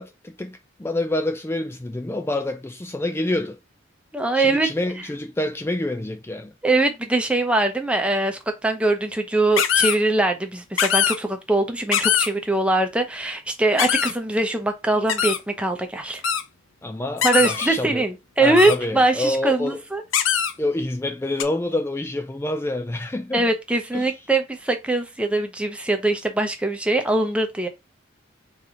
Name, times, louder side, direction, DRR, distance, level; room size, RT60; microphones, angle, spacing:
voice 1, 0.0-3.6 4.3-6.5 16.8-18.0 18.4-19.8 20.6-23.5 23.9-24.1, left 1 dB, 10° left, 0.3 m, -27 dB
voice 2, 4.1-4.7 6.6-16.2 17.2-20.0 23.3-27.7, right 2 dB, 5° right, 0.8 m, -22 dB
sound 1, 9.6-9.9 10.8-11.2 11.9-12.3 13.8-14.1 15.1-15.4 16.2-16.4 17.2-17.7 18.6-18.7 20.1-20.5 21.4-21.5, left 9 dB, 75° left, 0.6 m, -21 dB
4.0 x 3.4 x 3.7 m
head